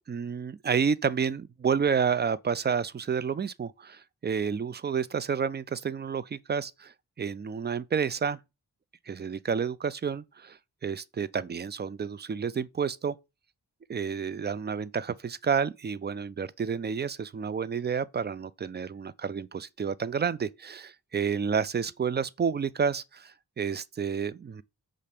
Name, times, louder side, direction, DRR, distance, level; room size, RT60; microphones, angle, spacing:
voice 1, 0.0-8.4 9.1-13.2 13.9-24.6, right 6 dB, 30° right, 0.3 m, -30 dB
5.4 x 2.5 x 3.3 m
cardioid pair, 40°, 40 cm